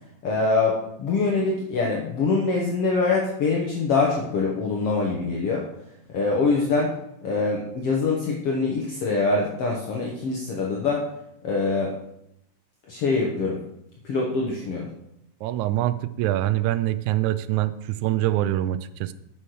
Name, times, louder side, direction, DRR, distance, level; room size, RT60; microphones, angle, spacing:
voice 1, 0.2-5.7 6.1-6.9 7.2-11.0 11.4-11.9 12.9-13.6 14.0-14.9, left 3 dB, 60° left, -1 dB, 2.0 m, -24 dB
voice 2, 15.4-19.1, right 14 dB, 85° right, 13 dB, 2.0 m, -24 dB
8.3 x 6.5 x 6.3 m, 0.78 s
omnidirectional pair, 3.4 m